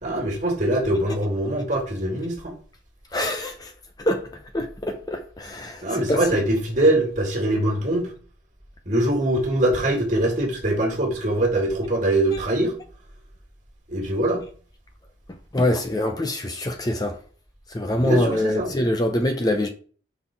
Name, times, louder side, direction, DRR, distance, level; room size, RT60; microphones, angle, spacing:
voice 1, 0.0-2.6 5.8-8.1 8.9-12.8 13.9-14.5 17.9-18.7, right 1 dB, 40° right, 2.0 m, -23 dB
voice 2, 3.1-3.7 4.0-4.3 4.5-6.2 12.3-12.4 15.5-17.2 17.7-19.7, left 1 dB, 20° left, 0.6 m, -24 dB
5.5 x 4.2 x 5.9 m
head